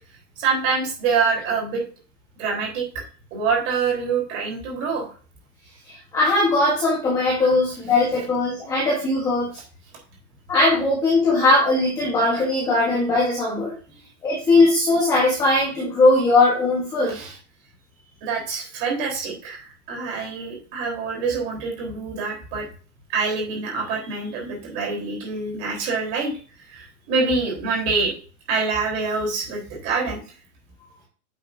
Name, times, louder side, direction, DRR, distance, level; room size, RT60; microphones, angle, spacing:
voice 1, 0.4-1.8 2.4-2.9 3.3-5.1 13.9-14.0 17.1-17.3 18.2-22.7 23.1-26.4 26.7-28.1 28.5-30.2, right 4 dB, 25° right, -2 dB, 4.0 m, -25 dB
voice 2, 5.8-9.5 10.5-13.7 14.2-17.1, left 2 dB, 10° left, -6 dB, 1.2 m, -19 dB
9.1 x 7.5 x 2.7 m, 0.38 s
supercardioid pair, 180°, 46 cm